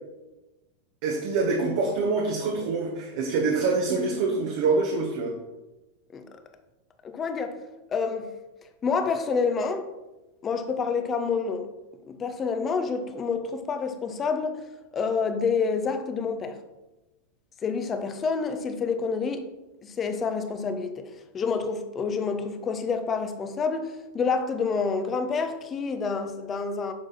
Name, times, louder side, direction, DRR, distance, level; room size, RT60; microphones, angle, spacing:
voice 1, 1.0-5.3, right 3 dB, 50° right, 0 dB, 1.4 m, -25 dB
voice 2, 7.0-7.6 7.9-8.3 8.8-9.8 10.4-11.7 12.1-14.6 14.9-16.6 17.6-19.4 19.8-21.1 21.3-26.9, left 5 dB, 25° left, 8 dB, 1.1 m, -28 dB
9.7 x 6.7 x 4.3 m, 1.0 s
figure-of-eight pair, 90°, 0 cm